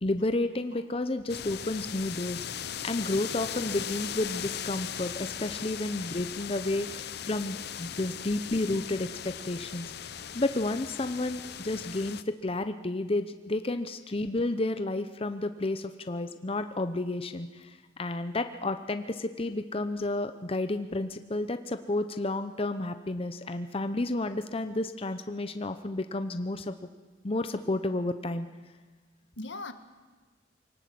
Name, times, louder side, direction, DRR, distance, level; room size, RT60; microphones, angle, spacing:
voice 1, 0.0-2.4 2.8-10.1 10.3-26.7 27.2-28.5, left 2 dB, 30° left, 9 dB, 0.8 m, -31 dB
sound 1, 1.3-12.2, left 9 dB, 60° left, 0.7 m, -38 dB
voice 2, 29.4-29.7, left 2 dB, 85° left, 9 dB, 1.5 m, -42 dB
24.0 x 18.5 x 7.8 m, 1.4 s
head